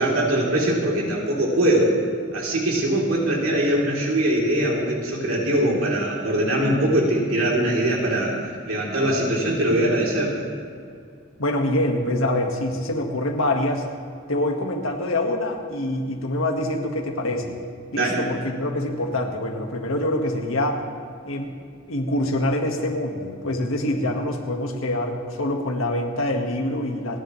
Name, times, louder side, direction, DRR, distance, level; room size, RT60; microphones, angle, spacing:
voice 1, 0.0-1.9 2.3-8.4 8.7-10.4 17.9-18.2, right 1 dB, 90° right, -4 dB, 3.5 m, -22 dB
voice 2, 11.4-13.9 14.3-17.6 17.9-20.8 21.2-21.5 21.9-27.2, left 1 dB, 85° left, 2 dB, 1.7 m, -25 dB
29.5 x 10.0 x 3.2 m, 2.2 s
head